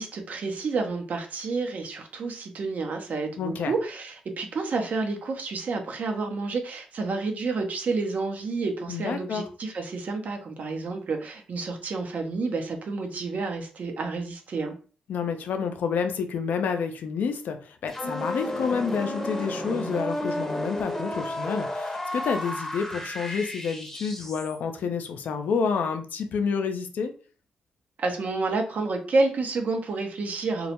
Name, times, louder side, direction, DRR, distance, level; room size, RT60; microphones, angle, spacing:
voice 1, 0.0-14.8 28.0-30.7, right 3 dB, 60° right, 4 dB, 0.6 m, -29 dB
voice 2, 3.4-3.7 8.9-9.4 15.1-27.1, left 6 dB, 70° left, 6 dB, 0.4 m, -29 dB
sound 1, 17.9-24.6, left 1 dB, 10° left, 0.7 m, -32 dB
2.2 x 2.0 x 2.8 m, 0.38 s
supercardioid pair, 50°, 3 cm